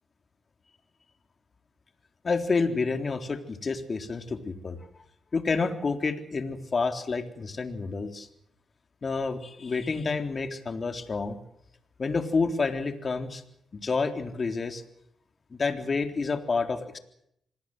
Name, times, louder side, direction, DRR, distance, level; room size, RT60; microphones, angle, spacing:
voice 1, 2.2-4.8 5.3-8.3 9.0-11.4 12.0-13.4 13.7-14.8 15.5-17.0, left 4 dB, 45° left, 7 dB, 3.7 m, -29 dB
27.0 x 20.0 x 8.0 m, 0.75 s
cardioid pair, 65°, 0 cm